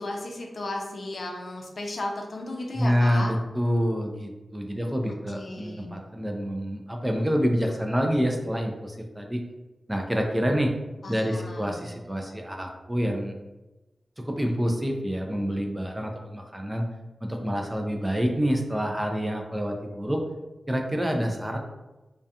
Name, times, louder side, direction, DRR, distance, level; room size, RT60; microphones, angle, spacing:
voice 1, 0.0-3.3 5.1-6.0 11.0-11.8, left 2 dB, 60° left, 1 dB, 0.4 m, -35 dB
voice 2, 2.7-9.4 9.9-10.7 11.1-13.4 14.2-16.9 17.2-20.2 20.7-21.6, equal, 15° right, 2 dB, 0.3 m, -27 dB
2.3 x 2.2 x 2.7 m, 1.1 s
wide cardioid pair, 90°, 0 cm